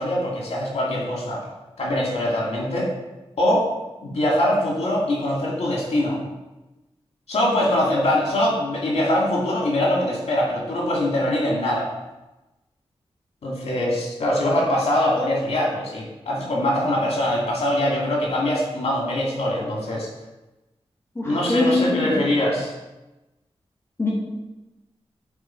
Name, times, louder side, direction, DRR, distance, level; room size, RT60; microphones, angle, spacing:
voice 1, 0.0-1.4 1.8-2.9 3.4-3.7 4.0-6.2 7.3-11.9 13.4-20.1 21.2-22.7, left 1 dB, 85° left, -3 dB, 2.4 m, -23 dB
voice 2, 21.2-22.2 24.0-24.1, left 2 dB, 25° left, -6 dB, 2.3 m, -23 dB
8.7 x 4.8 x 4.6 m, 1.0 s
wide cardioid pair, 100°, 11 cm